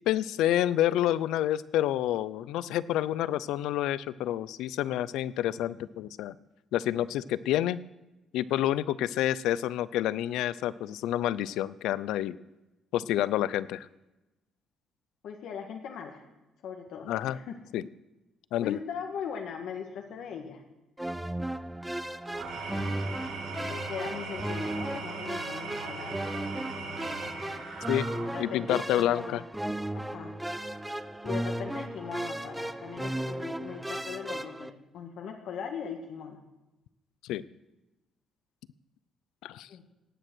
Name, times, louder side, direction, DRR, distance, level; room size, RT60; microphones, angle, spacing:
voice 1, 0.1-6.3 6.7-7.8 8.3-12.4 12.9-13.9 17.1-17.4 17.7-17.8 18.5-18.8 27.9-28.1 28.4-29.4 37.2-37.4 39.4-39.7, left 12 dB, 90° left, 18 dB, 0.5 m, -28 dB
voice 2, 15.2-16.3 16.6-17.6 18.6-20.6 23.7-26.4 28.1-29.4 29.9-30.3 31.2-36.4 39.7-39.8, left 7 dB, 70° left, 3 dB, 1.5 m, -40 dB
sound 1, 21.0-34.7, right 1 dB, 5° right, 0.5 m, -35 dB
Engine / Tools, 22.2-28.7, right 4 dB, 85° right, 5.8 m, -40 dB
17.5 x 9.2 x 6.2 m, 1.0 s
cardioid pair, 155°, 0 cm